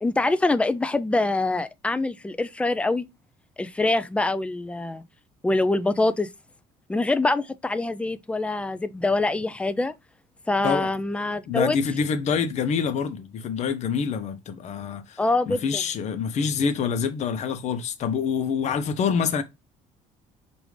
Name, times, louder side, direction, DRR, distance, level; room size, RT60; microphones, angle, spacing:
voice 1, 0.0-3.1 3.6-5.0 5.4-6.3 6.9-9.9 10.5-11.8 15.2-15.8, left 2 dB, 10° left, 0.4 m, -24 dB
voice 2, 11.5-15.2 15.5-19.4, left 6 dB, 50° left, 0.7 m, -26 dB
4.8 x 2.6 x 3.1 m
cardioid pair, 110°, 15 cm